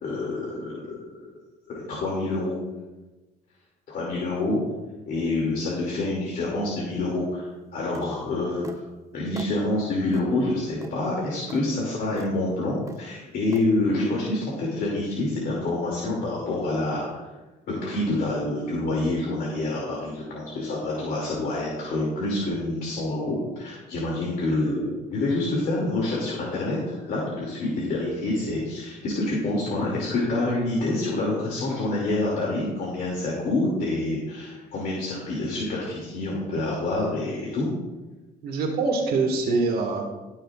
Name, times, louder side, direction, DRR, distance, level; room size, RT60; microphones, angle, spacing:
voice 1, 0.0-1.0 1.9-2.6 3.9-4.6 5.1-8.7 9.1-17.1 17.7-37.7, left 2 dB, 60° left, -4 dB, 2.6 m, -27 dB
sound 1, 7.9-8.1 8.6-8.8 9.4-9.6 10.1-10.3 10.8-11.0 11.5-11.6 12.2-12.3 12.9-13.1 13.5-13.7, right 3 dB, 20° right, 0.7 m, -40 dB
voice 2, 38.4-40.0, right 3 dB, 65° right, 0 dB, 1.9 m, -24 dB
19.5 x 6.6 x 2.5 m, 1.1 s
cardioid pair, 110°, 17 cm